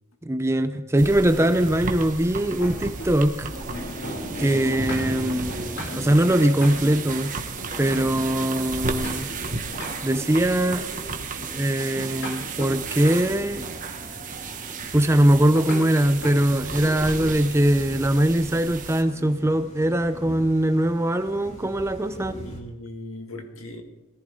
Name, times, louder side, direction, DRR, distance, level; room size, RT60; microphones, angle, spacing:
voice 1, 0.2-3.5 4.4-7.3 7.8-9.3 10.0-10.9 11.5-13.7 14.9-22.3, right 1 dB, 15° right, 9 dB, 0.5 m, -21 dB
sound 1, 1.0-19.0, right 4 dB, 40° right, 1.3 m, -34 dB
sound 2, 1.3-3.3 3.6-9.4 9.7-10.9 11.8-13.6 15.5-15.8 16.2-16.4 16.7-17.4, equal, 60° left, 6.0 m, -37 dB
Thunder / Rain, 3.4-22.6, equal, 30° left, 2.8 m, -39 dB
voice 2, 22.2-23.8, left 1 dB, 75° left, 4 dB, 2.0 m, -38 dB
20.5 x 14.5 x 3.7 m, 1.0 s
head